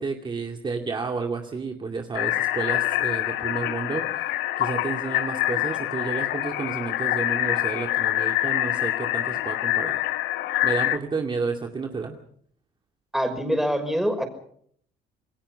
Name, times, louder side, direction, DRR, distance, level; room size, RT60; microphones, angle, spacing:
voice 1, 0.0-10.0 10.6-12.1, right 4 dB, 30° right, 3 dB, 2.5 m, -31 dB
sound 1, 2.1-11.0, left 15 dB, 85° left, 1.3 m, -26 dB
voice 2, 13.1-14.3, equal, ahead, 6 dB, 5.8 m, -24 dB
28.5 x 21.0 x 5.8 m, 0.63 s
cardioid pair, 110°, 17 cm